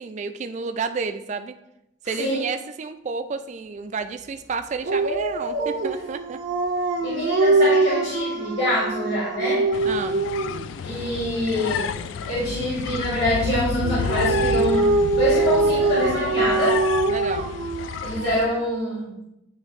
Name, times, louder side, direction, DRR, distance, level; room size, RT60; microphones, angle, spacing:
voice 1, 0.0-1.5 2.0-6.4 9.8-10.2 17.1-17.5, right 5 dB, 35° right, 9 dB, 0.3 m, -31 dB
Dog, 4.8-10.7 13.8-18.4, right 2 dB, 75° right, 0.7 m, -23 dB
voice 2, 7.0-9.6 10.8-12.0 12.3-16.8 18.0-19.1, equal, 60° left, -8 dB, 1.9 m, -25 dB
sound 1, 9.7-18.5, left 6 dB, 80° left, 0.3 m, -31 dB
9.6 x 3.2 x 3.1 m, 0.85 s
head